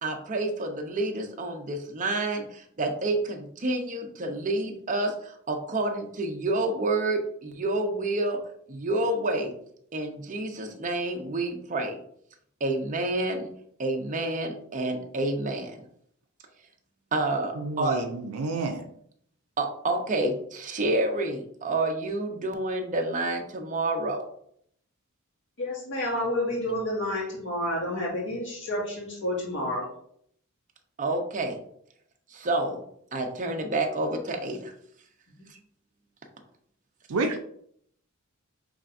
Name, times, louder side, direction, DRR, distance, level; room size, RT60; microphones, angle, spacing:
voice 1, 0.0-2.5 2.8-5.1 5.5-8.4 8.7-9.5 9.9-12.0 12.6-13.5 13.8-15.7 17.1-18.0 19.6-24.2 31.0-31.6 32.4-32.8 33.1-34.7, right 2 dB, 35° right, 3 dB, 0.7 m, -28 dB
voice 2, 17.6-18.9 37.1-37.4, right 3 dB, 80° right, 4 dB, 0.5 m, -29 dB
voice 3, 25.6-29.9 35.4-35.5, left 1 dB, 60° left, -4 dB, 1.9 m, -30 dB
6.1 x 3.3 x 2.6 m, 0.66 s
head